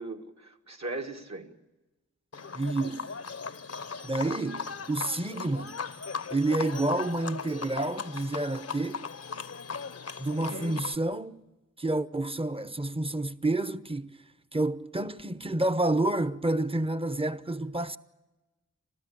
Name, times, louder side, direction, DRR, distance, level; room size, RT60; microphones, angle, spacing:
voice 1, 0.0-1.5 4.2-4.4 10.3-10.8, right 2 dB, 60° right, 2.2 m, -39 dB
Livestock farm animals working animals, 2.3-11.0, left 5 dB, 50° left, 0.8 m, -38 dB
voice 2, 2.5-3.1 4.0-5.8 6.3-9.1 10.2-11.4 11.8-14.2 14.5-18.0, right 2 dB, 20° right, 0.9 m, -29 dB
29.5 x 13.5 x 8.7 m
cardioid pair, 45°, 31 cm